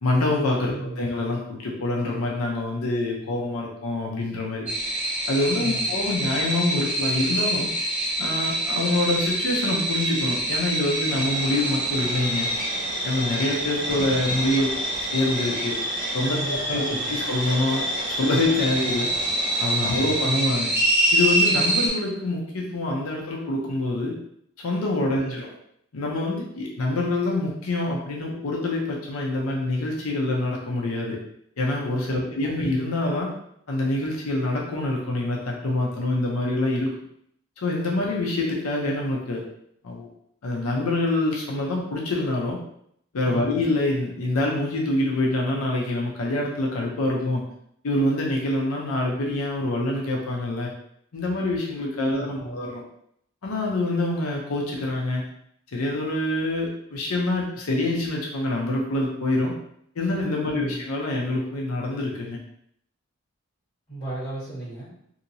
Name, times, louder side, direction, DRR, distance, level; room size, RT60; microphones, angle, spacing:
voice 1, 0.0-4.7 5.3-7.7 8.2-12.5 13.0-14.7 15.1-15.8 16.1-16.4 16.7-19.1 19.6-20.7 21.1-24.2 24.6-25.5 25.9-31.2 31.6-33.3 33.7-36.9 37.6-39.5 39.8-40.1 40.4-42.6 43.1-47.4 47.8-50.7 51.1-52.8 53.4-55.2 55.7-59.5 60.0-62.4, left 2 dB, 90° left, -1 dB, 0.6 m, -26 dB
voice 2, 0.7-1.1 5.5-5.9 16.2-17.2 18.8-18.9 19.9-20.2 25.1-25.4 32.1-32.7 43.2-43.6 52.1-52.7 60.4-60.8 63.9-64.9, right 2 dB, 25° left, -12 dB, 1.5 m, -35 dB
sound 1, 4.7-21.9, right 1 dB, 5° right, 0.8 m, -26 dB
sound 2, 11.1-20.4, right 1 dB, 40° right, 0.5 m, -38 dB
2.9 x 2.8 x 2.6 m, 0.70 s
head